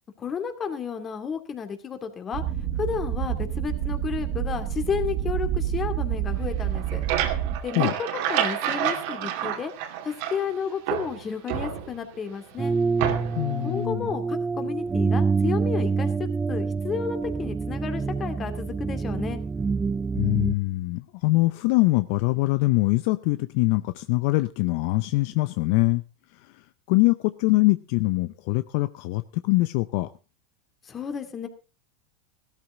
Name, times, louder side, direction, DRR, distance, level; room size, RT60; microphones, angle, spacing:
voice 1, 0.2-2.4 2.8-7.0 7.6-7.9 8.3-9.7 10.0-12.8 13.6-19.4 30.8-31.5, left 6 dB, 30° left, 8 dB, 2.5 m, -32 dB
sound 1, 2.3-7.6, right 11 dB, 50° right, 1.4 m, -28 dB
sound 2, 6.6-10.5 10.9-12.2 13.0-13.5, right 10 dB, 65° right, 2.4 m, -29 dB
sound 3, 12.6-20.5, right 4 dB, 15° right, 0.6 m, -27 dB
voice 2, 13.4-14.1 20.1-26.0 26.3-30.1, left 21 dB, 60° left, 13 dB, 0.6 m, -23 dB
15.5 x 13.0 x 3.8 m, 0.31 s
hypercardioid pair, 110°, 0 cm